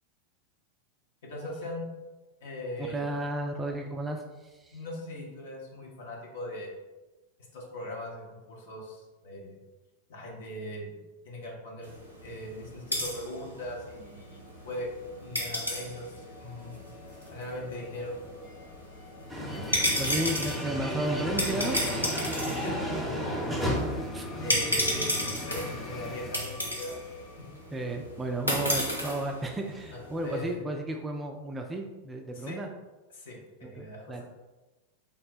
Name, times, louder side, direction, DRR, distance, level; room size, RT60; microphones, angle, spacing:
voice 1, 1.2-1.9 2.4-3.2 4.7-6.8 7.4-9.6 10.1-10.9 11.2-11.9 12.2-14.9 15.2-16.8 17.2-18.2 19.5-20.1 22.6-23.1 24.4-27.0 27.4-27.5 27.9-28.0 29.9-30.6 32.3-32.6 33.1-34.2, left 1 dB, 60° left, -2 dB, 0.9 m, -40 dB
voice 2, 2.9-4.8 20.0-22.5 24.1-24.3 24.6-24.7 27.7-32.7 33.6-34.2, right 1 dB, 15° right, 3 dB, 0.4 m, -34 dB
sound 1, 11.8-30.5, equal, 90° left, 0.8 m, -34 dB
sound 2, 13.5-28.2, left 4 dB, 30° left, 0.7 m, -50 dB
sound 3, 19.3-26.4, equal, ahead, 0.9 m, -33 dB
3.5 x 2.1 x 4.1 m, 1.1 s
figure-of-eight pair, 90°, 0 cm